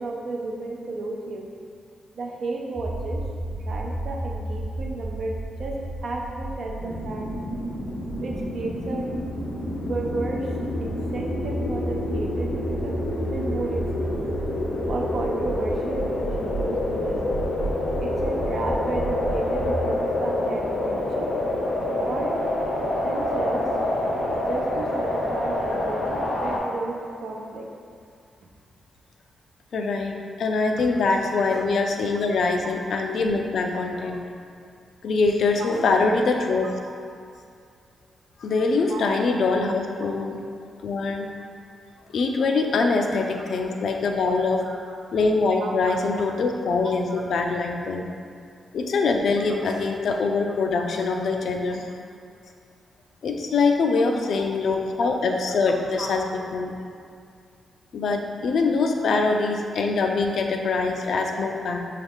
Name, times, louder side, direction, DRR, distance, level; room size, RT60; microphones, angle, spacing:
voice 1, 0.0-1.5 2.1-3.2 3.5-5.8 6.0-7.3 8.2-9.0 9.9-10.5 10.8-13.8 14.1-14.4 14.9-17.4 18.0-21.3 22.0-22.4 23.0-23.7 24.5-27.7 32.1-32.2 33.6-33.7 35.6-35.9 36.9-37.0 38.9-39.0 43.3-43.4 44.6-44.8 45.6-46.0 46.8-47.2 56.0-56.1, right 2 dB, 65° right, -1 dB, 0.5 m, -33 dB
sound 1, 2.8-19.8, right 1 dB, 15° right, 0.5 m, -33 dB
sound 2, 6.8-26.6, left 1 dB, 90° left, 0.7 m, -28 dB
voice 2, 29.7-34.3 35.0-36.7 38.4-40.4 40.8-41.3 42.1-44.6 45.1-48.1 48.7-51.9 53.2-56.2 56.5-56.7 57.9-61.8, left 3 dB, 65° left, 3 dB, 0.4 m, -23 dB
4.6 x 2.3 x 3.5 m, 2.2 s
cardioid pair, 115°, 0 cm